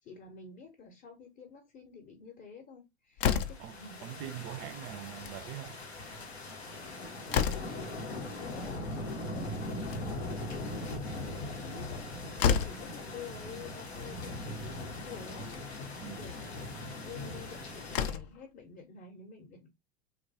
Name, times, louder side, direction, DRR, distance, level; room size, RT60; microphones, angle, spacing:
voice 1, 0.0-4.2 7.3-12.1 12.4-16.4 17.0-19.7, left 5 dB, 30° left, 0.7 m, -50 dB
Slam, 3.2-3.8 5.0-5.4 5.7-5.8 6.1-6.2 6.8-7.9 9.6-10.3 11.9-12.0 12.4-12.9 14.0-14.1 14.5-14.6 15.4-15.7 17.4-17.5 17.8-18.4, left 8 dB, 60° left, 0.4 m, -30 dB
voice 2, 3.3-5.8 16.0-16.3, right 12 dB, 45° right, 0.4 m, -43 dB
sound 1, 3.4-18.1, left 1 dB, 90° left, 0.7 m, -40 dB
3.1 x 2.2 x 2.6 m
figure-of-eight pair, 80°, 31 cm